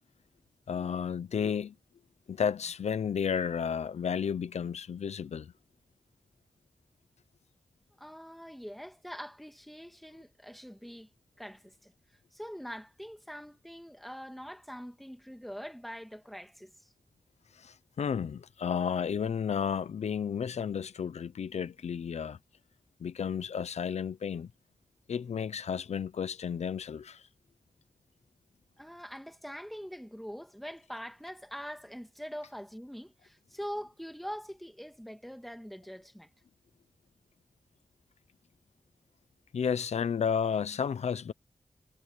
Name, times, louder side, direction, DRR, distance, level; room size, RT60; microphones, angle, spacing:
voice 1, 0.7-1.7 2.3-5.5 17.6-22.4 23.0-24.5 25.1-27.2 39.5-41.3, left 7 dB, 90° left, 0.7 m, -32 dB
voice 2, 8.0-11.1 11.4-11.9 12.3-16.9 28.8-36.3, equal, ahead, 2.0 m, -43 dB
wide cardioid pair, 95°, 11 cm